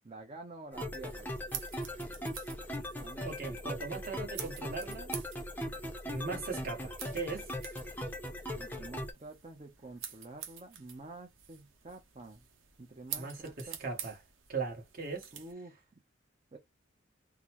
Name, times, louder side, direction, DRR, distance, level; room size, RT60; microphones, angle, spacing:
voice 1, 0.0-1.3 3.0-3.3 8.5-12.4 12.8-13.8 15.3-15.9 16.5-16.6, right 2 dB, 30° right, 0.6 m, -48 dB
sound 1, 0.7-9.1, left 1 dB, 10° left, 0.5 m, -39 dB
sound 2, 1.0-15.5, right 9 dB, 80° right, 0.8 m, -48 dB
voice 2, 3.2-5.1 6.1-7.5 13.2-14.2 14.5-15.3, right 4 dB, 45° right, 1.2 m, -39 dB
3.8 x 2.1 x 2.9 m
head